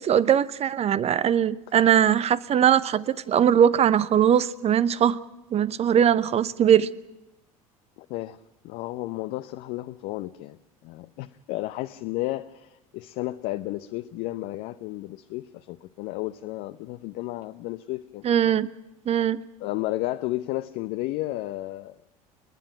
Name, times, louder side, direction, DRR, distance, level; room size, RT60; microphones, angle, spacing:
voice 1, 0.0-5.2 5.5-6.9 18.2-18.7 19.1-19.4, right 9 dB, 35° right, 0.8 m, -21 dB
voice 2, 8.0-8.4 8.6-18.2 19.6-22.0, left 17 dB, 55° left, 0.7 m, -33 dB
29.5 x 10.5 x 9.3 m
figure-of-eight pair, 65°, 19 cm